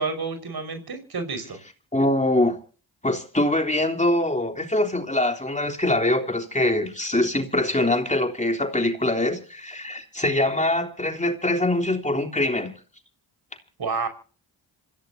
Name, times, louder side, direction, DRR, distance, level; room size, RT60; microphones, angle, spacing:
voice 1, 0.0-1.6 13.8-14.1, right 4 dB, 50° right, 5.4 m, -29 dB
voice 2, 1.9-2.6 3.0-12.7, left 1 dB, 15° left, 3.3 m, -23 dB
27.0 x 16.0 x 2.8 m
supercardioid pair, 55°, 47 cm